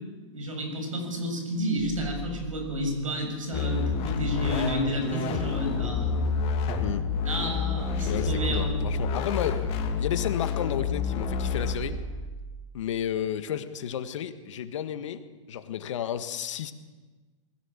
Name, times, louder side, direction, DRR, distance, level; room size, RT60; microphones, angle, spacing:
voice 1, 0.3-6.2 7.2-8.9, equal, 85° right, 4 dB, 6.6 m, -31 dB
sound 1, 1.8-3.2 3.6-10.1 10.5-12.7, right 2 dB, 20° left, 2.9 m, -42 dB
sound 2, 3.5-11.8, left 5 dB, 35° left, 2.9 m, -28 dB
voice 2, 8.1-12.0 12.7-16.7, left 9 dB, 65° left, 10 dB, 1.6 m, -32 dB
21.0 x 16.5 x 7.4 m, 1.3 s
hypercardioid pair, 115°, 17 cm